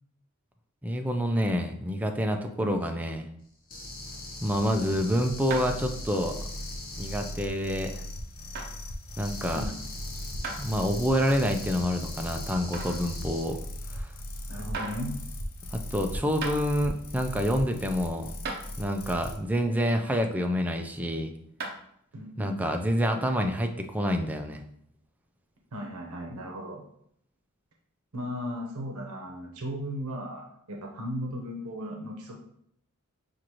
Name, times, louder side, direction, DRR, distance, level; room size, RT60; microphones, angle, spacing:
voice 1, 0.8-3.3 4.4-6.4 7.0-8.0 9.2-9.7 10.6-13.6 13.9-14.1 15.7-18.4 18.8-21.3 22.4-24.6, equal, 5° right, 4 dB, 0.3 m, -27 dB
sound 1, 3.7-7.3 9.2-13.4, left 2 dB, 40° left, 0.9 m, -41 dB
sound 2, 4.0-19.4, equal, 65° left, 0.7 m, -39 dB
sound 3, 5.5-5.9 6.4-6.5 7.2-7.3 8.5-8.7 10.4-10.6 11.2-11.3 12.7-13.1 14.2-14.3 14.7-15.0 16.0-16.1 16.4-16.6 17.9-18.0 18.4-18.6 21.6-21.9, right 3 dB, 45° right, 0.7 m, -35 dB
voice 2, 14.5-15.2 22.1-22.6 25.7-26.8 28.1-32.3, equal, 85° right, 1 dB, 0.7 m, -36 dB
6.1 x 2.5 x 2.9 m, 0.70 s
head